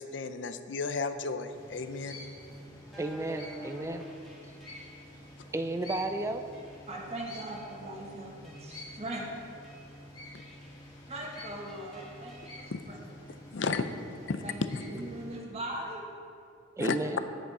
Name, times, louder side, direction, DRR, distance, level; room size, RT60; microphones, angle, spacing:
voice 1, 0.0-2.2 10.3-10.4 12.7-12.8 13.5-13.8 14.3-14.4 16.8-17.0, left 4 dB, 65° left, 10 dB, 0.5 m, -33 dB
sound 1, 1.5-15.4, left 1 dB, 20° left, 1.5 m, -49 dB
sound 2, 2.9-5.2 5.8-6.0 6.5-7.0 7.5-8.0 8.4-9.0 9.6-9.9 10.4-10.9 11.3-12.6, left 1 dB, ahead, 1.7 m, -50 dB
voice 2, 3.0-4.0 5.5-6.4 16.8-17.2, right 2 dB, 15° right, 8 dB, 0.4 m, -32 dB
voice 3, 6.9-9.2 11.1-13.0 14.4-16.0, right 1 dB, 35° right, -3 dB, 1.3 m, -40 dB
9.2 x 8.1 x 5.0 m, 2.6 s
head